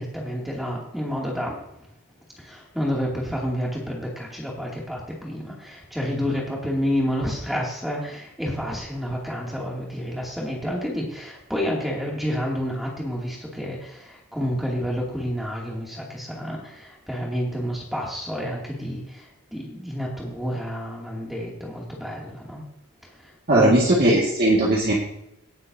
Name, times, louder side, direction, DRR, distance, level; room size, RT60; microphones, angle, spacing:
voice 1, 0.0-1.6 2.4-22.6 23.0-24.1, equal, ahead, -3 dB, 2.5 m, -29 dB
voice 2, 23.5-24.9, right 1 dB, 45° right, -4 dB, 2.0 m, -18 dB
18.5 x 8.1 x 2.8 m, 0.79 s
head